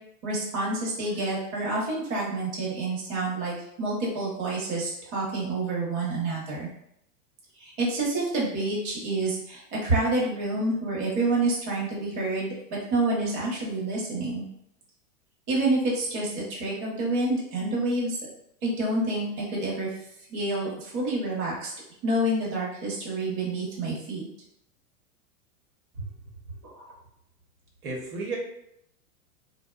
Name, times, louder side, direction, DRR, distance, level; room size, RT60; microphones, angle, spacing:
voice 1, 0.2-6.7 7.6-14.4 15.5-18.2 18.6-20.0 20.3-21.7 22.0-24.3 26.7-26.8, right 2 dB, 35° right, -4 dB, 0.7 m, -28 dB
voice 2, 27.8-28.4, right 3 dB, 85° right, -1 dB, 1.0 m, -33 dB
2.8 x 2.0 x 2.2 m, 0.76 s
supercardioid pair, 150°, 44 cm